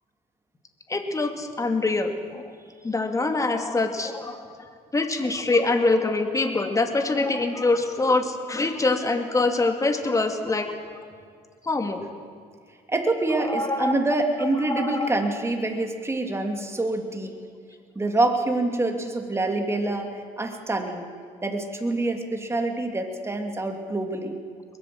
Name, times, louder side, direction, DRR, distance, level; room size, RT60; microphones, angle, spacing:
voice 1, 0.9-2.4 2.8-4.5 4.9-10.7 11.6-12.0 13.4-13.9 14.6-15.1, left 3 dB, 20° left, 6 dB, 2.5 m, -24 dB
voice 2, 12.9-17.3 17.9-21.0 21.4-24.4, right 2 dB, 15° right, 4 dB, 2.9 m, -26 dB
22.5 x 20.5 x 7.9 m, 2.1 s
cardioid pair, 110°, 17 cm